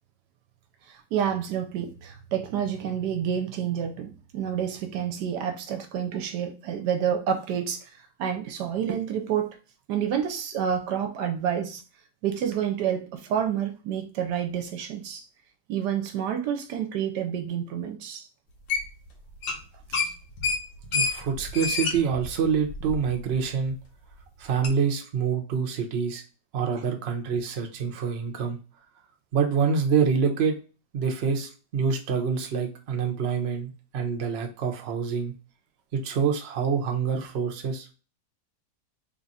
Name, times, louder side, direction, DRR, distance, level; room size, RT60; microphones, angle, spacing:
voice 1, 0.9-9.6 9.9-11.8 12.2-15.3 15.7-18.3 19.9-20.0, right 8 dB, 75° right, 1.1 m, -29 dB
sound 1, 18.7-19.1 19.4-19.6 19.9-23.3 23.7-23.8 24.6-24.7, left 4 dB, 80° left, 1.5 m, -28 dB
voice 2, 20.9-23.8 24.4-26.2 26.5-28.6 29.3-30.5 30.9-35.3 35.9-37.9, right 6 dB, 55° right, 0.7 m, -26 dB
3.5 x 2.4 x 4.0 m
omnidirectional pair, 1.9 m